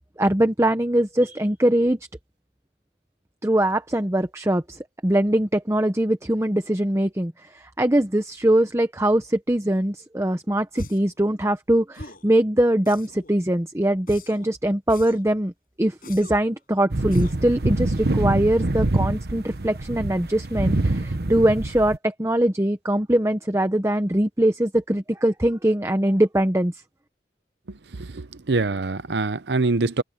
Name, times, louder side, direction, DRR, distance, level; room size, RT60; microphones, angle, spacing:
voice 1, 0.2-2.0 3.4-15.5 15.8-26.7, right 1 dB, 15° right, 0.9 m, -22 dB
sound 1, 10.7-11.1 11.9-12.3 12.8-13.3 14.1-14.5 14.9-15.3 16.0-16.5 17.1-17.5, left 1 dB, 55° left, 7.3 m, -41 dB
sound 2, 16.9-22.0, right 2 dB, 60° right, 1.1 m, -25 dB
voice 2, 28.1-30.0, right 3 dB, 80° right, 0.8 m, -24 dB
head